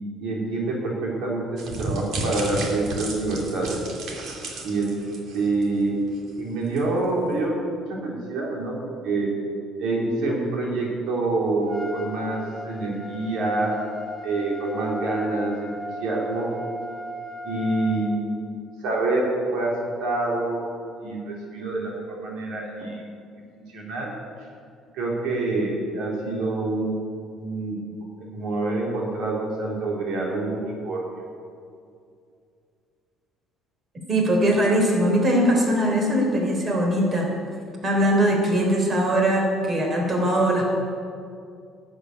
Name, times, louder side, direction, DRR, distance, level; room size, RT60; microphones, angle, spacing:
voice 1, 0.2-3.8 4.6-4.9 5.3-6.0 6.4-7.6 7.9-9.3 9.8-13.7 14.2-15.7 16.0-16.5 17.4-18.3 18.8-19.7 20.0-20.7 21.0-23.0 23.5-24.1 24.9-27.0 27.3-27.8 28.2-31.0, right 2 dB, 80° right, -2 dB, 3.0 m, -26 dB
sound 1, 1.6-5.8 6.2-6.3 6.8-6.9, right 2 dB, 65° right, 2.6 m, -32 dB
Trumpet, 11.7-18.2, equal, 5° left, 2.3 m, -37 dB
voice 2, 34.1-37.3 37.8-40.7, right 1 dB, 35° right, 0 dB, 3.7 m, -21 dB
12.0 x 8.2 x 9.3 m, 2.4 s
cardioid pair, 110°, 0 cm